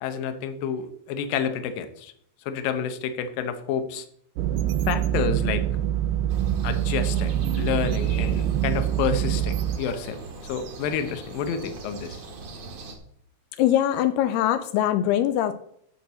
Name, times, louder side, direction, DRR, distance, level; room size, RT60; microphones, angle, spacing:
voice 1, 0.0-2.1 2.5-4.1 4.9-5.6 6.6-10.2 10.5-12.2, left 7 dB, 70° left, 8 dB, 2.5 m, -29 dB
sound 1, 4.4-9.8, right 11 dB, 90° right, 1.9 m, -25 dB
sound 2, 6.3-13.0, right 3 dB, 50° right, 2.6 m, -41 dB
voice 2, 13.6-15.5, left 12 dB, 85° left, 10 dB, 2.6 m, -22 dB
11.5 x 4.7 x 7.0 m, 0.69 s
omnidirectional pair, 4.6 m